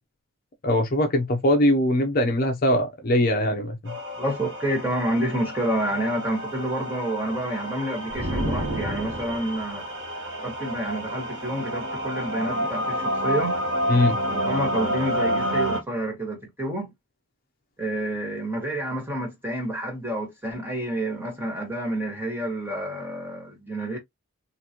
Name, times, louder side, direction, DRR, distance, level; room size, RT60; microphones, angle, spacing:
voice 1, 0.6-4.0 13.9-14.2, left 1 dB, 45° left, 0.6 m, -21 dB
sound 1, 3.9-15.8, equal, 55° right, 1.2 m, -29 dB
voice 2, 4.2-9.9 10.4-13.6 14.2-16.9 17.8-24.0, right 1 dB, 10° right, 1.5 m, -29 dB
sound 2, 8.1-9.7, right 1 dB, 80° right, 1.2 m, -30 dB
3.9 x 2.5 x 2.9 m
head